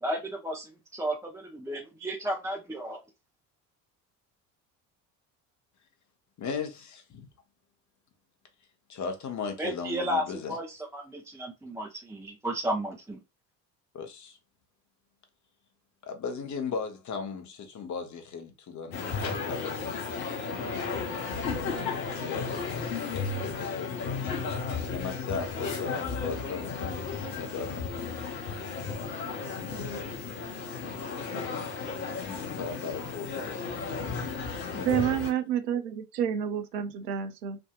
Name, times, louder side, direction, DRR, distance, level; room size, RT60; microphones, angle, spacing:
voice 1, 0.0-3.0 9.6-13.2, right 1 dB, 5° right, 0.7 m, -33 dB
voice 2, 6.4-7.3 8.9-10.6 13.9-14.4 16.0-20.0 20.6-20.8 22.1-24.3 24.8-27.9 32.2-33.9 34.7-35.2, left 5 dB, 35° left, 1.0 m, -37 dB
sound 1, 18.9-35.3, left 5 dB, 85° left, 0.9 m, -34 dB
voice 3, 34.8-37.6, right 9 dB, 80° right, 0.6 m, -29 dB
3.5 x 2.6 x 2.4 m
figure-of-eight pair, 60°, 49 cm